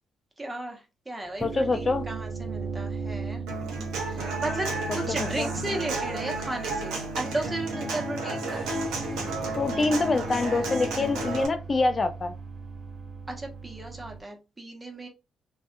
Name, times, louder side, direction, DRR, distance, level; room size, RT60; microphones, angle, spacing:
voice 1, 0.4-3.4 4.1-4.7 4.9-8.7 13.3-15.1, right 2 dB, 20° right, 1.0 m, -35 dB
sound 1, 1.3-14.2, right 5 dB, 40° right, 0.5 m, -38 dB
voice 2, 1.4-2.0 5.4-5.5 9.6-12.3, left 3 dB, 40° left, 0.3 m, -25 dB
Human voice / Acoustic guitar, 3.5-11.5, right 2 dB, 75° right, 0.7 m, -32 dB
2.6 x 2.3 x 2.5 m
hypercardioid pair, 50°, 0 cm